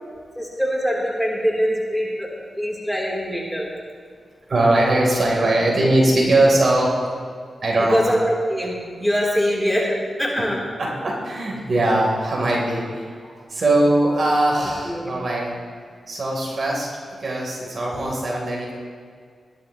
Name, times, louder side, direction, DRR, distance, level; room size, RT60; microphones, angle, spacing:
voice 1, 0.4-2.3 2.6-3.7 7.9-10.6 13.2-13.3 14.6-15.2, equal, 5° left, -3 dB, 3.4 m, -23 dB
voice 2, 4.5-6.9 7.6-8.0 10.8-13.1 13.5-15.5 16.1-16.9 17.2-18.7, right 1 dB, 60° right, -3 dB, 3.5 m, -20 dB
18.5 x 11.5 x 3.1 m, 2.1 s
cardioid pair, 45°, 0 cm